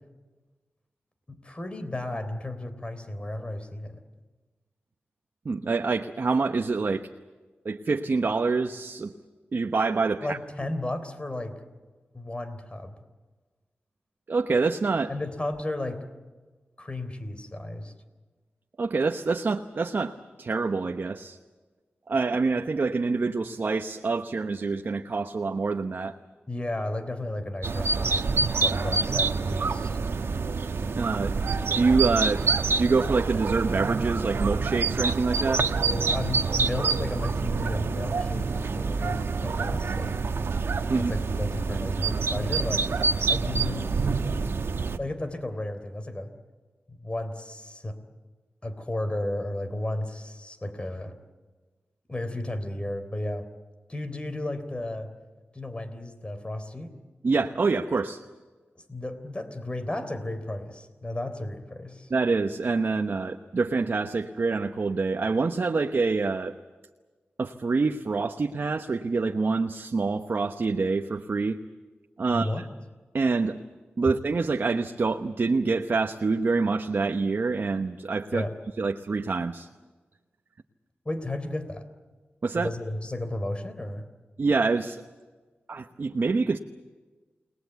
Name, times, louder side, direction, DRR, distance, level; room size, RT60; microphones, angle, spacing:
voice 1, 1.3-4.0 10.2-11.5 12.1-12.9 15.1-16.0 16.8-17.9 26.5-28.3 28.6-30.0 35.8-40.2 41.0-42.8 43.3-43.9 45.0-46.3 46.9-48.0 48.6-51.2 52.1-53.5 53.9-55.1 55.5-56.9 58.8-62.1 72.3-72.6 78.3-78.5 81.1-81.9 82.5-84.1, left 1 dB, 25° left, 9 dB, 3.6 m, -33 dB
voice 2, 5.4-7.1 7.6-9.1 9.5-10.4 14.3-15.1 18.8-21.4 22.1-26.1 30.9-31.3 31.7-35.7 40.9-41.1 57.2-58.2 62.1-66.5 67.4-71.6 72.2-72.6 73.1-73.6 74.0-78.4 78.8-79.7 82.4-82.7 84.4-85.0 85.7-86.6, right 4 dB, 60° right, 6 dB, 1.0 m, -26 dB
sound 1, 27.6-45.0, right 4 dB, 80° right, 1.2 m, -27 dB
29.5 x 20.0 x 8.2 m, 1.3 s
wide cardioid pair, 70°, 4 cm